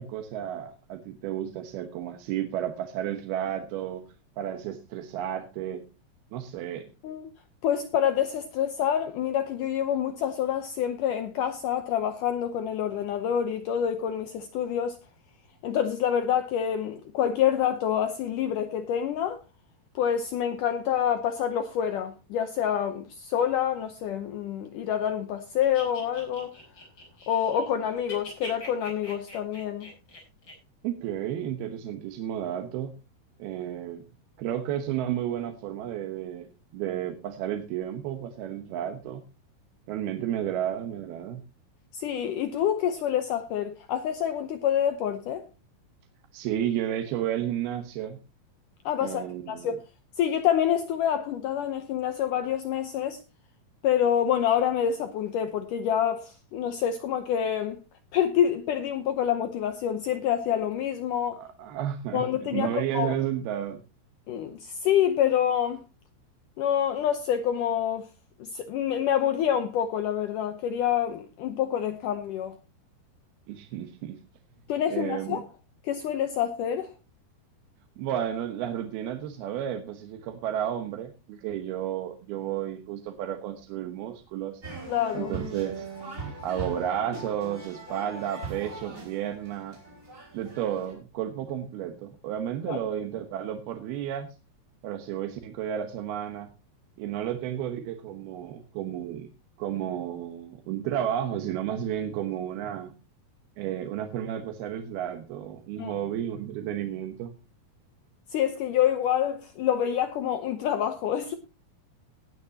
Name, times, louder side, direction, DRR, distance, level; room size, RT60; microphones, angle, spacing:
voice 1, 0.0-4.0 4.4-5.8 6.3-6.9 30.8-32.9 33.4-34.1 34.4-39.2 39.9-41.4 46.3-48.2 49.0-49.7 61.4-62.2 62.5-63.8 73.5-74.2 74.9-75.4 78.0-84.6 85.1-85.9 86.4-89.8 90.3-94.3 94.8-96.5 97.0-99.3 99.6-102.9 103.6-107.3, right 10 dB, 75° right, 3.0 m, -32 dB
voice 2, 7.6-15.0 15.6-19.4 20.0-26.5 27.3-29.9 41.9-45.4 48.9-49.8 50.2-53.2 53.8-57.8 58.1-61.4 62.1-63.1 64.3-65.8 66.6-68.1 68.4-72.6 74.7-75.5 75.8-76.9 84.9-85.3 92.7-92.8 105.8-105.9 108.3-111.3, left 9 dB, 75° left, 2.0 m, -27 dB
sound 1, 25.6-27.7 28.0-30.5, left 2 dB, 30° left, 6.2 m, -43 dB
sound 2, 84.6-90.9, right 3 dB, 20° right, 5.3 m, -40 dB
18.5 x 9.6 x 2.8 m
omnidirectional pair, 4.6 m